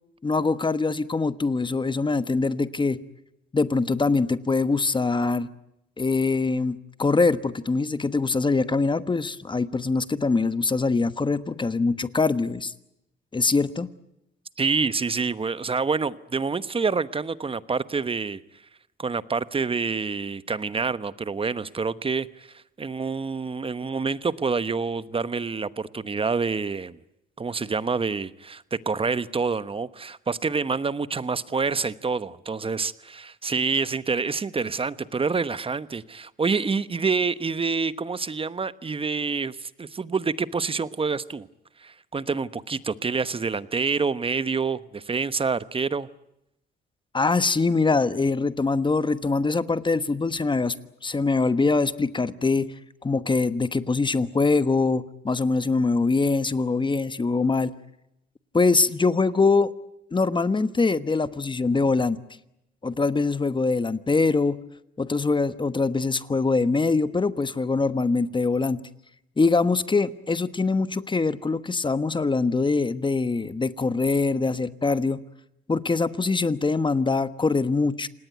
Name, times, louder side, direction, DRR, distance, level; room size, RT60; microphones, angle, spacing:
voice 1, 0.2-3.0 3.5-5.5 6.0-12.7 13.3-13.9 47.1-50.7 51.0-52.7 53.0-57.7 58.5-59.7 60.1-62.2 62.8-64.6 65.0-68.8 69.4-75.2 75.7-78.1, left 3 dB, 25° left, 13 dB, 1.2 m, -23 dB
voice 2, 14.6-18.4 19.0-27.0 27.4-41.5 41.8-46.1, right 4 dB, 25° right, 15 dB, 1.1 m, -27 dB
27.5 x 19.0 x 9.3 m, 0.85 s
cardioid pair, 90°, 20 cm